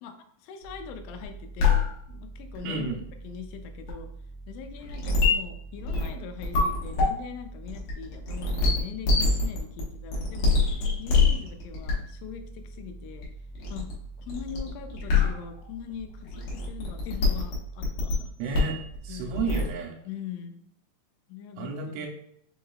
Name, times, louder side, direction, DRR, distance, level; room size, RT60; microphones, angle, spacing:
voice 1, 0.0-2.9 3.2-4.1 4.5-13.3 13.7-13.9 14.2-18.3 19.1-19.3 20.1-20.6 21.3-22.1, left 7 dB, 85° left, 6 dB, 3.0 m, -41 dB
sound 1, 0.6-19.7, left 4 dB, 70° left, 2.7 m, -28 dB
voice 2, 2.6-3.0 18.4-18.8 19.0-20.0 21.6-22.1, right 4 dB, 85° right, 0 dB, 3.1 m, -32 dB
6.9 x 3.2 x 2.3 m, 0.69 s
omnidirectional pair, 5.5 m